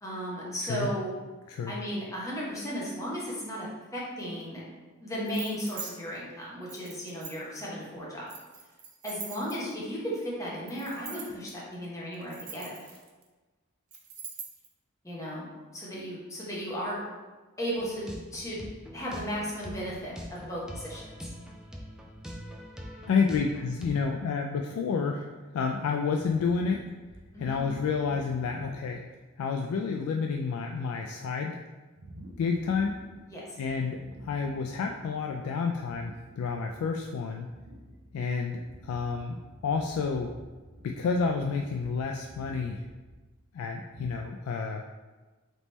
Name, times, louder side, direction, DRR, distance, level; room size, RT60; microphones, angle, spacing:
voice 1, 0.0-1.1 1.7-3.7 3.9-4.6 5.0-8.3 9.0-12.7 15.0-15.5 15.7-17.0 17.6-18.6 18.9-21.1 27.3-27.6 33.3-33.6, equal, 15° left, -6 dB, 1.0 m, -35 dB
sound 1, 5.3-5.9 6.7-7.6 8.3-9.8 10.7-11.5 12.1-13.2 13.9-14.7, right 6 dB, 85° right, 0.7 m, -43 dB
sound 2, 17.8-24.1, equal, 5° right, 0.3 m, -43 dB
voice 2, 23.1-26.8 27.4-29.1 29.4-31.6 32.4-32.9 33.6-37.5 38.1-40.3 40.8-42.8 43.5-44.8, left 5 dB, 85° left, 4 dB, 0.3 m, -30 dB
sound 3, 26.1-29.2 29.7-29.8 30.2-30.5 32.0-33.3 33.6-35.4 35.7-44.3, right 1 dB, 55° right, 0.8 m, -50 dB
3.5 x 3.0 x 4.0 m, 1.3 s
head